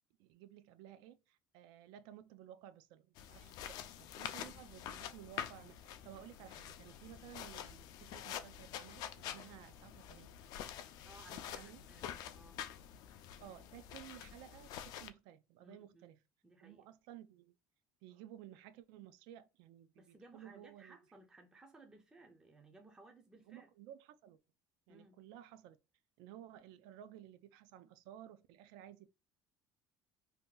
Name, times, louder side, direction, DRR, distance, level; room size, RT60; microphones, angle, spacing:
voice 1, 0.2-10.3 11.3-11.8 13.4-16.2 16.6-17.5 18.0-21.0 23.5-24.4 24.9-25.8 26.2-29.1, right 12 dB, 80° right, 0.4 m, -55 dB
sound 1, 3.1-15.1, left 10 dB, 60° left, 0.4 m, -47 dB
voice 2, 11.0-12.6 15.6-16.1 16.4-16.9 20.0-23.7 24.9-25.2, right 2 dB, 10° right, 0.4 m, -60 dB
2.7 x 2.2 x 3.7 m
cardioid pair, 135°, 8 cm